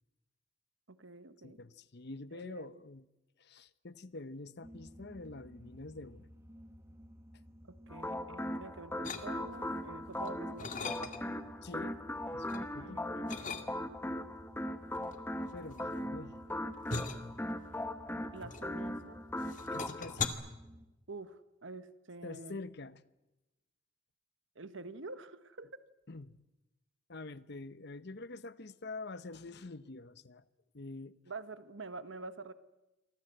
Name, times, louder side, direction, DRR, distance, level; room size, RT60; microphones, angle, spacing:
voice 1, 0.9-1.6 2.3-2.7 7.7-11.1 12.6-13.5 18.3-19.2 21.1-22.6 24.5-25.7 31.3-32.5, right 3 dB, 70° right, 1.4 m, -47 dB
voice 2, 1.4-3.0 3.4-6.3 11.6-12.0 12.3-13.0 15.5-16.4 19.7-20.3 22.2-23.0 26.1-26.4 27.1-30.4 30.7-31.2, left 2 dB, 60° left, 1.0 m, -46 dB
sound 1, 4.6-20.9, equal, 15° right, 2.0 m, -53 dB
sound 2, 7.9-20.3, left 1 dB, 10° left, 1.4 m, -39 dB
sound 3, 9.0-9.7 10.2-11.5 11.9-12.7 13.3-14.1 14.9-19.1 19.4-20.3, left 4 dB, 40° left, 2.1 m, -40 dB
28.5 x 23.5 x 8.0 m
head